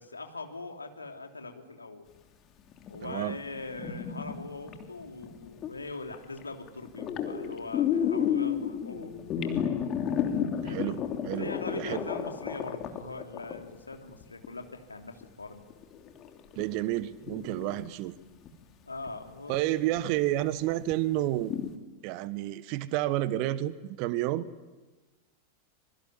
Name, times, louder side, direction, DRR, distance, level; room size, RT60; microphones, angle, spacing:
voice 1, 0.0-2.1 2.9-9.3 10.6-11.0 11.4-15.6 18.8-19.7, left 3 dB, 80° left, 4 dB, 3.1 m, -41 dB
sound 1, 2.7-5.7 6.1-6.4 6.7-14.6 15.2-15.3 15.7-18.1 18.5-18.6 19.1-19.2 19.9-20.0 20.4-20.5 20.8-20.9 21.4-21.7, left 8 dB, 30° left, 3.1 m, -32 dB
voice 2, 3.0-3.4 10.6-11.5 11.8-12.1 16.6-18.1 19.5-21.6 22.0-24.5, right 15 dB, 45° right, 16 dB, 1.3 m, -30 dB
25.5 x 23.5 x 9.8 m, 1.2 s
figure-of-eight pair, 90°, 0 cm